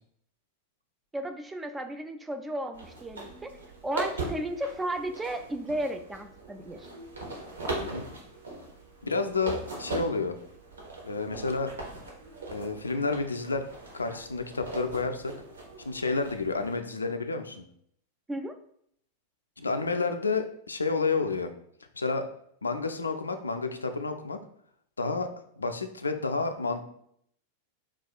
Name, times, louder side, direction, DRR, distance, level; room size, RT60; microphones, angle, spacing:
voice 1, 1.1-3.6 3.8-6.9 18.3-18.5, right 1 dB, 10° right, 7 dB, 0.3 m, -34 dB
sound 1, 2.7-16.8, right 2 dB, 70° right, 0.8 m, -40 dB
voice 2, 9.0-10.3 11.0-11.7 12.5-13.7 13.9-15.3 15.8-17.6 19.6-21.5 22.0-22.3 22.6-24.4 25.0-25.3 25.6-26.8, left 4 dB, 75° left, 7 dB, 0.3 m, -30 dB
4.2 x 2.3 x 2.4 m, 0.68 s
figure-of-eight pair, 90°, 0 cm